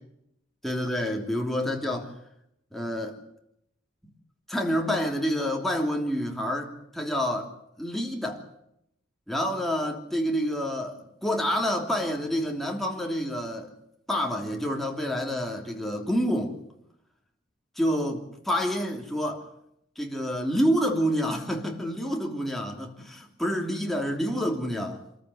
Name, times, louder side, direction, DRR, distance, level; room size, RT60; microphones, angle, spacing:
voice 1, 0.6-2.1 2.7-3.2 4.0-4.1 4.5-7.5 7.8-8.4 9.3-13.7 14.1-16.5 17.8-19.4 20.0-25.2, equal, ahead, 3.0 m, -28 dB
26.0 x 14.5 x 9.6 m
head